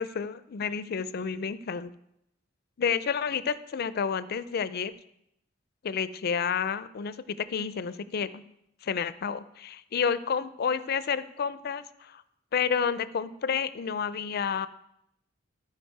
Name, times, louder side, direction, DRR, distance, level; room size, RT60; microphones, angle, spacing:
voice 1, 0.0-1.9 2.8-4.9 5.8-8.4 8.8-12.2 12.5-14.7, left 6 dB, 50° left, 15 dB, 0.4 m, -30 dB
13.0 x 4.9 x 4.7 m, 0.80 s
head